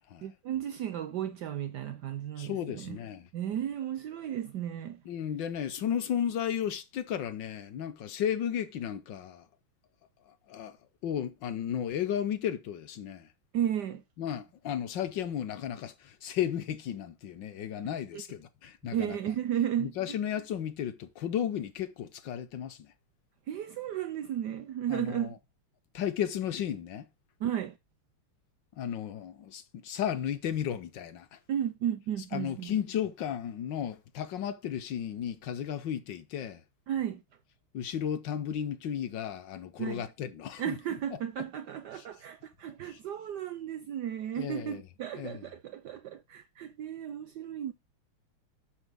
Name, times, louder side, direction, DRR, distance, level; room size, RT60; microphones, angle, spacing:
voice 1, 0.2-3.0 3.3-5.0 13.5-14.0 18.1-18.2 18.9-20.2 23.5-25.4 27.4-27.8 31.5-32.7 36.9-37.2 39.8-40.0 40.6-47.7, right 10 dB, 75° right, 1.0 m, -34 dB
voice 2, 2.4-3.3 5.1-9.5 10.2-10.8 11.0-13.3 14.2-19.2 19.8-22.9 24.9-25.4 25.9-27.1 28.7-31.4 32.3-36.6 37.7-40.8 41.1-41.2 41.9-42.0 42.8-43.0 44.4-44.8 45.1-45.5, left 9 dB, 65° left, 1.3 m, -34 dB
8.1 x 6.7 x 3.5 m
omnidirectional pair, 2.3 m